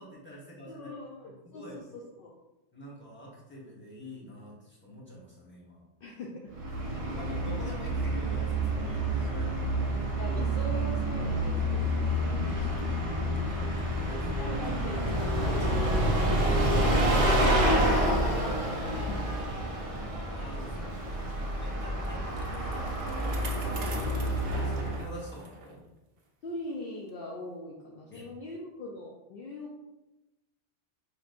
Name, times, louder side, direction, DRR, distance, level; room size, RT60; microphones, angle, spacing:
voice 1, 0.0-0.9 1.2-1.8 2.7-5.8 7.0-9.7 12.3-14.3 19.5-25.9 28.1-28.3, equal, 10° left, -6 dB, 1.1 m, -47 dB
voice 2, 0.7-2.3 6.0-6.5 10.2-12.5 14.1-15.0 15.4-19.4 26.4-29.8, left 2 dB, 60° left, -2 dB, 0.7 m, -41 dB
Bus, 6.5-25.1, right 1 dB, 40° right, 0.5 m, -28 dB
Bicycle, 21.8-25.7 26.2-26.3 27.1-27.2, right 4 dB, 80° right, 1.0 m, -45 dB
5.2 x 3.0 x 2.5 m, 1.0 s
omnidirectional pair, 1.2 m